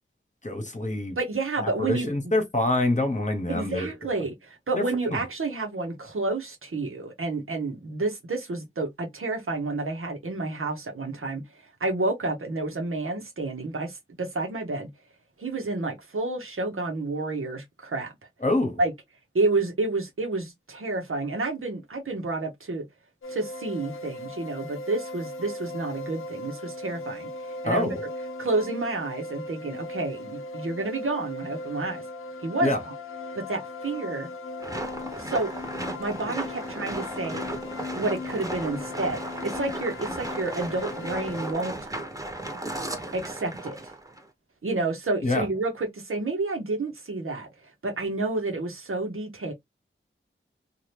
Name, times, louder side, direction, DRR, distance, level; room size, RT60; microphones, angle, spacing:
voice 1, 0.4-1.2 1.6-3.9 4.7-5.2 18.4-18.8 27.6-28.0 32.6-32.8 45.2-45.4, left 1 dB, 35° left, 1.0 m, -26 dB
voice 2, 1.2-2.1 3.5-14.9 15.4-18.1 18.8-18.9 19.3-22.9 23.3-28.0 28.4-32.0 32.4-32.9 33.3-34.3 35.2-35.5 36.0-37.5 37.9-41.7 43.1-43.9 44.6-47.5 47.8-49.5, right 2 dB, 85° right, 0.9 m, -30 dB
sound 1, 23.2-41.5, left 2 dB, 80° left, 0.5 m, -38 dB
sound 2, 34.6-44.2, right 1 dB, 15° right, 1.0 m, -35 dB
2.8 x 2.4 x 3.2 m
wide cardioid pair, 50°, 21 cm